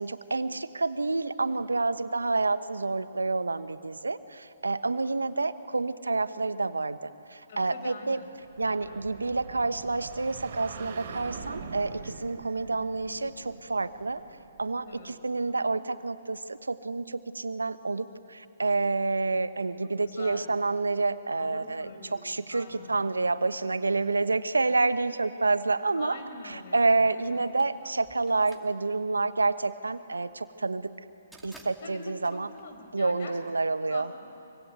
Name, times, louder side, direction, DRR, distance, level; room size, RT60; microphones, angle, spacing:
voice 1, 0.0-8.2 8.6-14.2 14.6-26.2 26.4-30.9 31.4-32.5 32.9-34.1, right 3 dB, 85° right, 13 dB, 1.1 m, -28 dB
voice 2, 7.5-8.3 8.6-9.0 14.8-15.1 15.6-15.8 20.0-20.5 21.4-23.1 25.9-27.4 31.8-33.4 33.9-34.3, left 3 dB, 55° left, 5 dB, 4.8 m, -45 dB
sound 1, 8.4-15.0, right 5 dB, 50° right, 3.5 m, -44 dB
sound 2, 27.2-33.4, right 2 dB, ahead, 2.5 m, -56 dB
25.0 x 24.5 x 9.1 m, 2.6 s
figure-of-eight pair, 130°, 0 cm